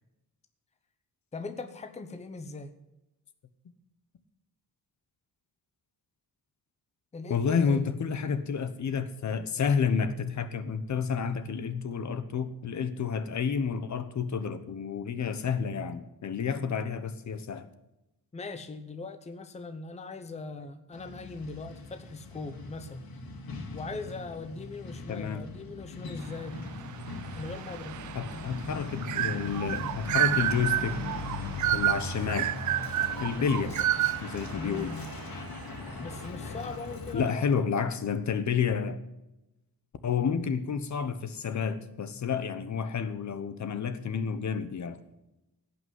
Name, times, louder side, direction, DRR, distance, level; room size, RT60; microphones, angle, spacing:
voice 1, 1.3-2.7 7.1-7.9 18.3-23.1 23.7-26.6 27.3-28.0 33.4-33.7 34.6-35.1 36.0-37.6, left 3 dB, 20° left, 8 dB, 0.8 m, -40 dB
voice 2, 7.3-17.7 25.1-25.4 28.1-31.0 31.7-32.5 33.2-33.7 34.2-35.0 37.1-39.0 40.0-45.0, left 6 dB, 50° left, 12 dB, 1.1 m, -30 dB
Truck, 20.9-37.1, left 3 dB, 70° left, 2.9 m, -40 dB
sound 1, 26.7-35.7, right 13 dB, 55° right, 0.5 m, -31 dB
17.0 x 5.9 x 9.3 m, 0.93 s
wide cardioid pair, 180°, 37 cm